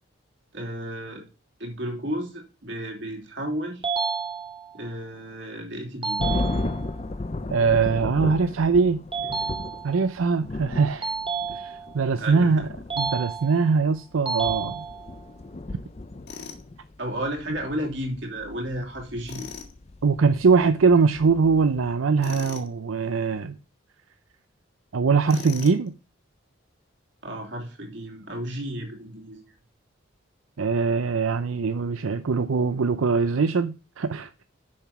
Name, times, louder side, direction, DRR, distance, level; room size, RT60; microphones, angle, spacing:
voice 1, 0.5-1.2 1.6-3.8 4.7-6.2 12.1-12.7 17.0-19.5 27.2-29.5, equal, 60° right, 3.0 m, -33 dB
sound 1, 3.8-4.9 6.0-7.0 9.1-10.1 11.0-12.1 12.9-13.8 14.3-15.3, right 6 dB, 25° right, 1.9 m, -30 dB
sound 2, 6.2-21.9, left 2 dB, 30° left, 0.5 m, -35 dB
voice 2, 7.5-9.0 9.8-11.1 11.5-12.7 13.0-14.9 20.0-23.5 24.9-25.9 30.6-34.3, right 5 dB, 85° right, 0.5 m, -22 dB
Tools, 16.3-16.6 19.2-19.7 22.2-22.7 25.3-25.9, left 5 dB, 55° left, 1.8 m, -39 dB
7.2 x 6.0 x 5.9 m
head